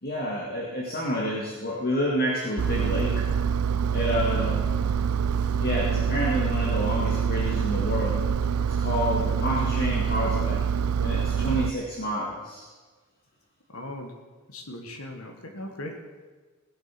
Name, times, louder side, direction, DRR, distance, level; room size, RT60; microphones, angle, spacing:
voice 1, 0.0-3.2 3.9-4.7 5.6-8.2 8.8-10.6 11.0-12.6, equal, 45° left, -4 dB, 2.1 m, -29 dB
Engine, 2.6-11.7, right 7 dB, 80° right, 0.5 m, -25 dB
voice 2, 4.3-4.6 13.7-14.2 14.5-16.1, left 1 dB, 75° left, 4 dB, 1.6 m, -39 dB
18.0 x 8.1 x 6.0 m, 1.4 s
head